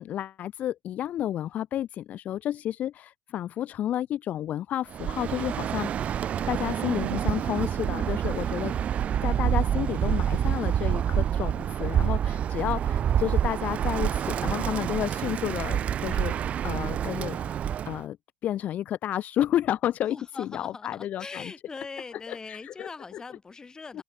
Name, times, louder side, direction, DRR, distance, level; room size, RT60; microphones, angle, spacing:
voice 1, 0.0-8.7 9.2-17.4 17.9-18.2 18.4-21.5 22.3-22.9 23.9-24.0, left 11 dB, 40° left, 1.5 m, -31 dB
Bird, 4.9-18.0, right 9 dB, 35° right, 0.7 m, -27 dB
voice 2, 20.1-24.0, left 4 dB, 20° left, 6.1 m, -42 dB
open air
hypercardioid pair, 95°, 4 cm